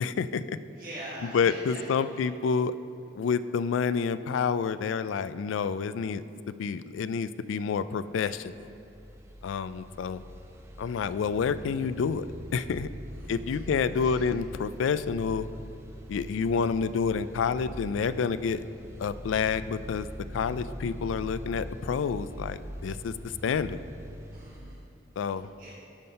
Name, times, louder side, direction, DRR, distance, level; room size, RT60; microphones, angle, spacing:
voice 1, 0.0-0.6 1.3-2.7 3.2-6.2 6.6-8.7 9.4-10.2 10.8-12.9 13.3-15.5 16.1-18.6 19.0-20.1 20.3-23.1 23.4-23.8 25.2-25.5, left 6 dB, 80° left, 14 dB, 0.3 m, -28 dB
voice 2, 0.7-2.3 13.1-13.6 13.9-14.3 24.3-24.8 25.3-25.7, right 1 dB, 45° right, -6 dB, 1.4 m, -44 dB
sound 1, 8.1-24.6, equal, 15° right, 0.5 m, -43 dB
9.7 x 5.6 x 5.4 m, 2.7 s
head